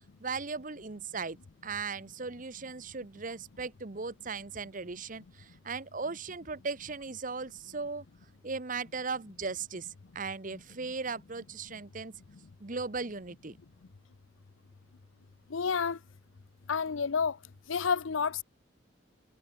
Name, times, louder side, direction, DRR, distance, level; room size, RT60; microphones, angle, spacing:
voice 1, 0.2-1.4 1.6-8.0 8.4-12.1 12.6-13.6, right 4 dB, 45° right, 1.1 m, -37 dB
voice 2, 15.5-16.0 16.7-17.4 17.7-18.4, left 6 dB, 90° left, 0.7 m, -29 dB
head